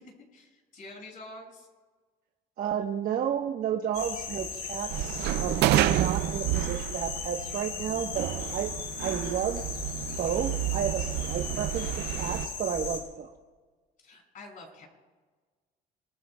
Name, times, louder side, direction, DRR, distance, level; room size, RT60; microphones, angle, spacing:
voice 1, 0.0-1.7 14.0-14.9, left 2 dB, 50° left, -1 dB, 6.4 m, -47 dB
voice 2, 2.6-8.7 9.0-9.6 10.2-13.3, right 8 dB, 55° right, 2 dB, 1.1 m, -32 dB
sound 1, 3.9-13.0, left 5 dB, 70° left, 5.1 m, -37 dB
sound 2, 4.9-12.5, right 15 dB, 80° right, 0.5 m, -30 dB
26.0 x 21.0 x 2.3 m, 1.4 s
cardioid pair, 110°, 17 cm